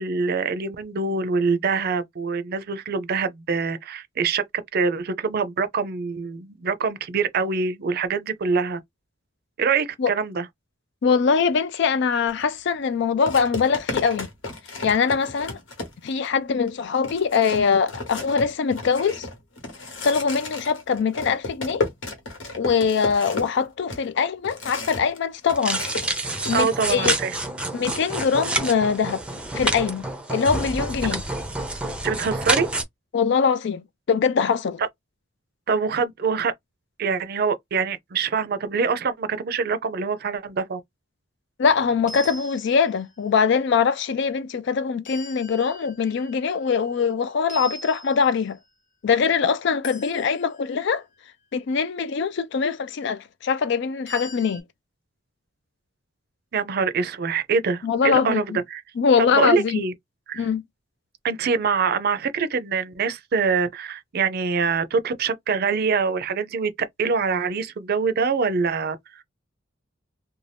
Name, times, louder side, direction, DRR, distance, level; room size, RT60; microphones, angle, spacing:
voice 1, 0.0-4.4 4.7-8.8 9.6-10.4 26.5-27.3 32.0-32.7 35.7-36.5 37.0-40.8 56.5-58.4 58.7-58.8 59.3-59.9 60.3-60.5 61.2-69.2, right 5 dB, 55° right, 0.5 m, -24 dB
voice 2, 11.0-14.3 14.8-15.6 16.0-19.3 20.0-21.9 22.6-25.8 26.5-27.1 27.7-29.2 29.5-30.0 30.3-31.2 33.1-34.8 41.6-48.6 49.0-51.0 51.5-54.6 57.8-58.6 59.0-59.8 60.4-60.6, left 6 dB, 65° left, 0.4 m, -22 dB
sound 1, 12.3-12.4 13.3-16.3 16.7-16.8 17.0-25.2 25.4-26.6, left 2 dB, 85° left, 1.2 m, -33 dB
sound 2, 25.6-32.8, right 2 dB, 5° right, 0.5 m, -28 dB
sound 3, 42.1-43.2 45.0-47.1 47.5-48.7 49.8-50.9 54.1-54.6, left 1 dB, 40° left, 0.9 m, -42 dB
2.6 x 2.2 x 3.3 m
head